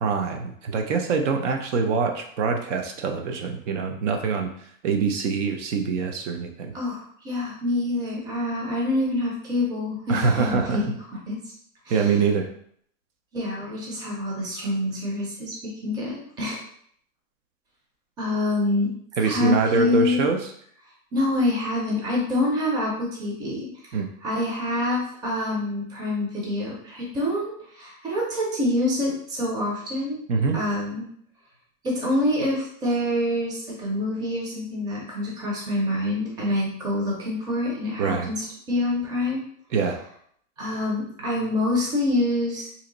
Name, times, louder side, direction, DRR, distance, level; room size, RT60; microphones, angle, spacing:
voice 1, 0.0-4.5 4.8-6.7 10.1-10.8 11.9-12.5 19.2-20.5 23.9-24.1 30.3-30.6 38.0-38.3 39.7-40.0, right 5 dB, 65° right, 5 dB, 0.7 m, -24 dB
voice 2, 6.7-10.9 11.3-11.4 11.9-12.1 13.3-16.6 18.2-18.9 19.2-20.2 21.1-30.2 30.5-31.0 31.8-39.4 40.6-42.7, left 1 dB, 10° right, -4 dB, 0.6 m, -26 dB
3.0 x 2.8 x 3.9 m, 0.64 s
supercardioid pair, 160°, 40 cm